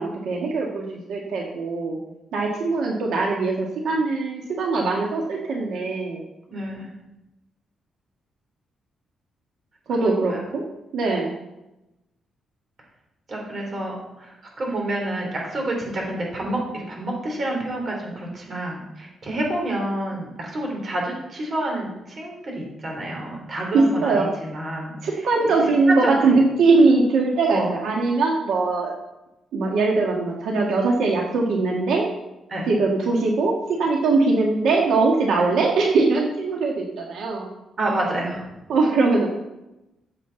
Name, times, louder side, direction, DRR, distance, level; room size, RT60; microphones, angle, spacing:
voice 1, 0.0-2.0 2.3-6.2 9.9-10.6 10.9-11.3 23.7-24.3 25.0-28.9 29.5-32.0 32.7-37.5 38.7-39.3, right 3 dB, 80° right, -1 dB, 1.7 m, -21 dB
voice 2, 6.5-6.9 10.0-10.4 13.3-24.9 25.9-26.4 27.5-27.7 32.5-32.7 35.4-35.5 37.8-38.5, right 1 dB, 35° right, -1 dB, 3.2 m, -28 dB
14.0 x 7.5 x 4.0 m, 0.94 s
cardioid pair, 155°, 0 cm